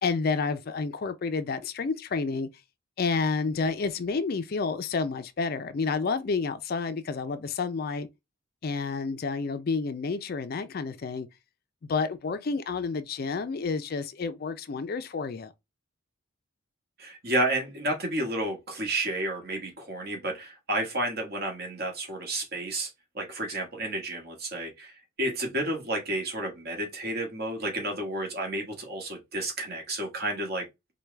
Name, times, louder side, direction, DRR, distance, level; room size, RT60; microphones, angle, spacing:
voice 1, 0.0-2.5 3.0-8.1 8.6-11.3 11.8-15.5, left 4 dB, 50° left, 0.4 m, -30 dB
voice 2, 17.0-22.9 23.1-30.6, right 1 dB, 50° right, 1.4 m, -31 dB
4.6 x 2.2 x 3.2 m
head